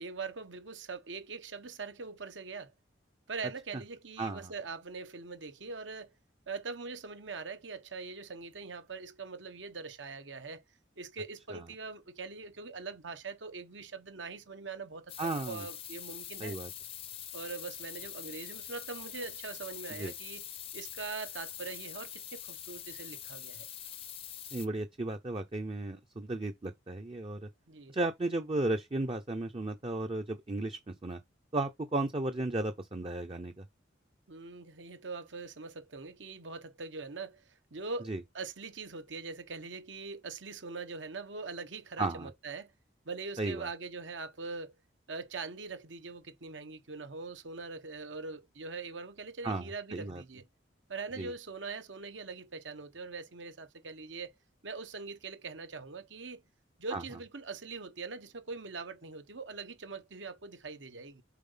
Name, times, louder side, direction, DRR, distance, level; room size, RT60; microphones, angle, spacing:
voice 1, 0.0-2.7 3.3-6.1 6.5-10.6 11.0-15.1 15.5-16.6 17.3-20.4 20.7-23.7 27.7-28.0 34.3-42.7 43.0-44.7 45.1-50.5 50.9-54.3 54.6-56.4 56.8-61.2, right 4 dB, 75° right, 1.2 m, -42 dB
voice 2, 4.2-4.5 11.5-11.6 15.2-15.7 16.4-16.7 20.0-20.1 24.5-27.5 27.9-31.2 31.5-33.6 38.1-38.2 42.0-42.3 43.4-43.7 49.4-50.2 51.2-51.3 56.9-57.0, right 2 dB, 30° right, 0.6 m, -34 dB
sound 1, 15.1-24.7, left 10 dB, 30° left, 0.6 m, -44 dB
7.3 x 4.1 x 5.6 m
head